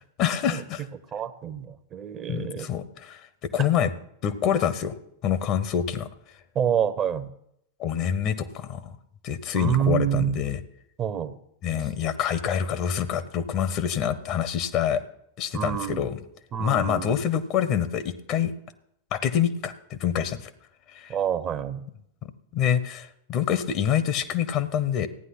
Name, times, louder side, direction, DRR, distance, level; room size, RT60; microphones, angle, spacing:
voice 1, 0.2-0.8 2.3-3.9 4.2-4.9 5.2-6.1 7.8-9.0 9.2-10.6 11.6-15.0 15.4-16.2 16.6-18.5 19.1-20.5 20.9-21.1 22.2-25.1, left 9 dB, 40° left, 13 dB, 1.1 m, -26 dB
voice 2, 1.1-2.7 6.5-7.3 9.5-10.4 11.0-11.4 11.8-11.9 15.5-16.1 16.5-17.2 21.1-21.8, right 9 dB, 30° right, 13 dB, 1.0 m, -27 dB
15.0 x 9.7 x 5.9 m, 0.75 s
figure-of-eight pair, 90°, 0 cm